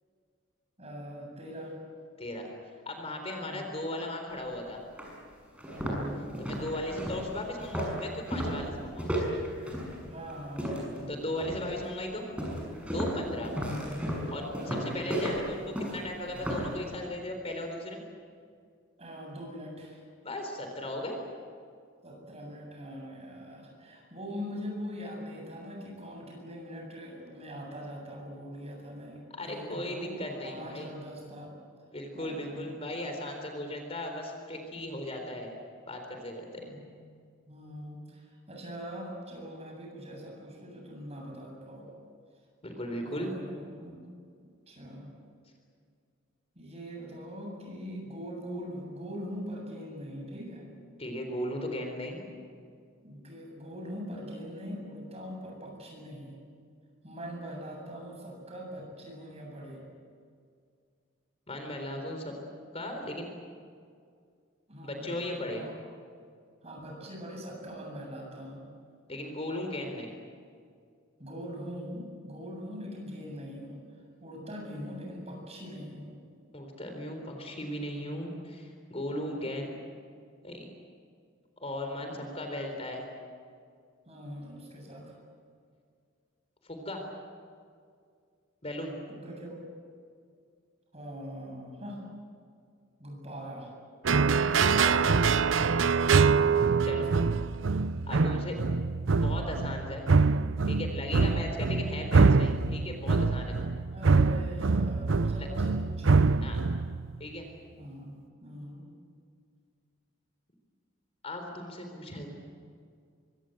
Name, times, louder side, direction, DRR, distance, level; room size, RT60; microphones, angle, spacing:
voice 1, 0.8-1.7 3.4-3.7 5.7-6.4 10.1-11.7 13.3-14.0 14.3-15.1 19.0-20.0 22.0-31.5 32.1-32.9 36.6-37.1 37.5-41.9 43.0-44.0 44.7-45.1 46.5-50.7 53.0-56.4 57.0-59.8 64.7-65.7 66.6-68.7 71.2-73.8 74.2-76.2 79.1-79.5 82.1-82.5 84.0-85.1 89.1-89.6 90.9-92.0 93.0-93.7 96.1-97.3 101.0-101.5 103.9-106.4 107.7-108.1 108.4-108.9, equal, 30° right, 0 dB, 8.0 m, -42 dB
voice 2, 2.2-2.5 2.9-4.8 6.4-9.2 11.1-12.2 12.9-13.5 14.3-18.0 20.2-21.2 29.4-30.9 31.9-35.5 35.9-36.6 42.6-43.3 51.0-52.2 61.5-62.3 62.7-63.3 64.8-65.6 69.1-70.2 76.5-79.7 80.4-80.7 81.6-83.1 86.6-87.0 88.6-88.9 94.4-95.0 96.8-97.1 98.1-98.6 99.2-100.1 100.7-103.6 105.4-105.5 106.4-106.6 107.2-107.5 111.2-112.3, left 1 dB, 30° left, 4 dB, 3.8 m, -37 dB
sound 1, 4.4-4.5 5.0-5.1 5.5-11.0 11.4-11.8 12.4-16.8, equal, 5° right, 6.5 m, -34 dB
sound 2, 94.0-107.2, right 4 dB, 70° right, 0.6 m, -25 dB
25.0 x 25.0 x 7.9 m, 2.2 s
head